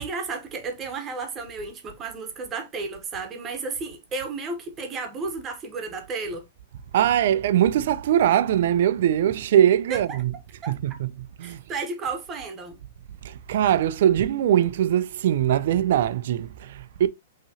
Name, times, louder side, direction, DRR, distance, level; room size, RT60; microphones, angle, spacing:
voice 1, 0.0-6.5 9.9-10.0 10.6-10.7 11.4-12.8, right 4 dB, 15° right, 1.0 m, -33 dB
voice 2, 6.9-10.3 10.7-11.6 13.2-17.1, right 10 dB, 55° right, 0.4 m, -22 dB
5.5 x 2.9 x 2.8 m
hypercardioid pair, 165°, 0 cm